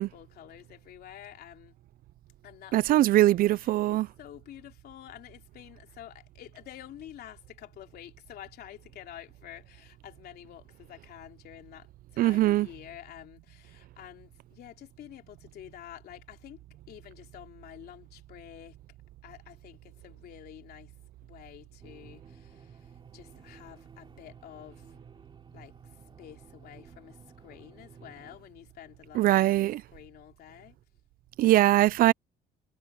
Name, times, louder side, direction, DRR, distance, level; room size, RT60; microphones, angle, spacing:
voice 1, 0.0-1.8 2.4-3.1 3.5-16.6 16.9-18.8 19.2-20.9 21.2-24.9 25.5-30.8, left 12 dB, 70° left, 3.3 m, -49 dB
voice 2, 2.7-4.1 12.2-12.7 29.1-29.8 31.4-32.1, right 15 dB, 60° right, 0.4 m, -22 dB
sound 1, 21.8-28.4, right 5 dB, 30° right, 4.8 m, -54 dB
cardioid pair, 110°, 17 cm